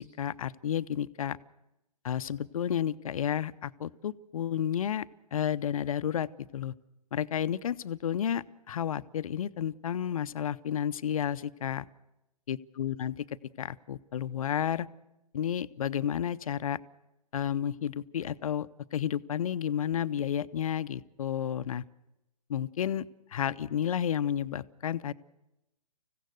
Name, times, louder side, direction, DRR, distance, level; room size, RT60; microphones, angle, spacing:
voice 1, 0.0-1.4 2.0-6.7 7.1-11.9 12.5-13.2 13.6-14.9 15.3-16.8 17.3-21.8 22.5-23.1 23.3-25.1, left 9 dB, 60° left, 14 dB, 0.6 m, -31 dB
25.5 x 16.0 x 6.5 m, 0.92 s
figure-of-eight pair, 130°, 21 cm